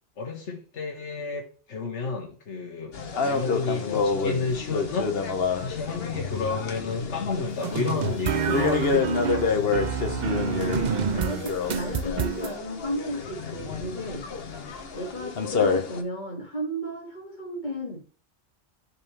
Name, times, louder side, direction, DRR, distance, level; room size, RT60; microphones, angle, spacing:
voice 1, 0.2-1.4 1.7-5.1 5.5-9.9 15.2-15.6, left 4 dB, 90° left, 1 dB, 1.5 m, -32 dB
sound 1, 2.9-16.0, left 5 dB, 60° left, 1.2 m, -28 dB
sound 2, 7.6-12.5, right 7 dB, 50° right, 0.6 m, -28 dB
voice 2, 10.3-14.3 14.9-18.0, equal, 40° left, -1 dB, 2.4 m, -34 dB
10.5 x 4.3 x 3.3 m, 0.39 s
omnidirectional pair, 1.2 m